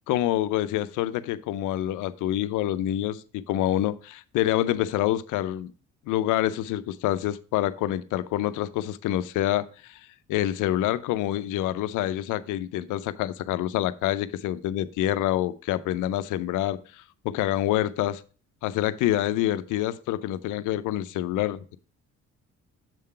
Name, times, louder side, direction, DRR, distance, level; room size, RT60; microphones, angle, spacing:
voice 1, 0.1-5.7 6.1-10.0 10.3-18.2 18.6-21.8, left 13 dB, 90° left, 0.5 m, -27 dB
7.5 x 3.7 x 5.5 m
cardioid pair, 90°, 30 cm